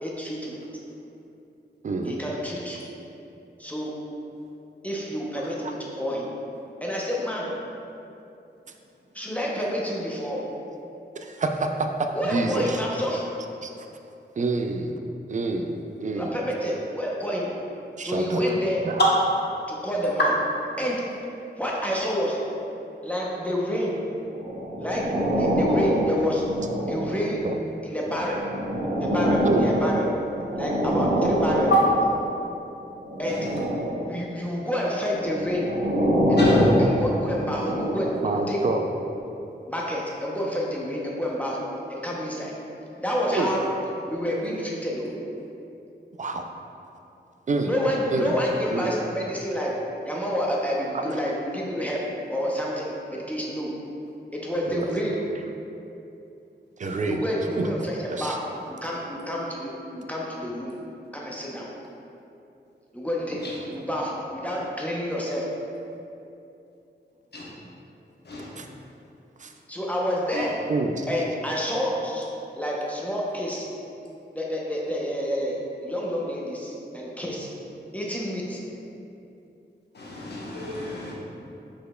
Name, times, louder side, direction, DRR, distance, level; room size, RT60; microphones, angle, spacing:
voice 1, 0.0-0.7 2.1-2.8 3.6-4.0 4.8-6.3 6.8-7.5 9.1-10.5 12.1-13.3 16.1-17.6 18.0-18.9 19.7-20.3 20.8-21.1 21.6-22.4 23.0-24.1 24.8-26.5 26.9-27.5 27.8-28.5 29.0-30.1 30.6-31.7 33.2-33.5 34.0-35.8 36.3-38.7 39.7-41.6 41.9-42.6 43.0-43.7 44.1-45.1 47.6-49.8 50.0-52.0 52.3-53.7 54.3-55.2 57.1-58.4 58.7-60.8 61.1-61.7 62.9-65.5 69.7-70.6 71.1-72.3 72.6-73.7 74.3-77.5 77.9-78.6, equal, 10° left, -4 dB, 0.6 m, -28 dB
voice 2, 1.8-2.2 5.6-5.7 11.2-12.8 13.6-13.9 14.4-15.0 15.3-15.7 16.0-16.4 18.0-18.6 18.8-19.0 27.4-27.6 29.4-29.7 38.2-38.9 43.2-43.5 46.2-46.4 47.5-47.8 48.1-48.4 48.7-48.9 50.9-51.2 54.7-54.9 56.8-57.2 57.6-57.7 58.1-58.4 68.6-68.7 69.4-69.5 70.7-71.1, right 3 dB, 40° right, 4 dB, 0.4 m, -27 dB
sound 1, 24.3-27.4 28.1-32.3 33.0-34.2 35.0-38.3 39.0-39.2, equal, 60° right, 0.7 m, -25 dB
voice 3, 79.9-81.1, right 1 dB, 60° left, -5 dB, 0.9 m, -27 dB
5.3 x 4.1 x 2.2 m, 2.8 s
wide cardioid pair, 80°, 19 cm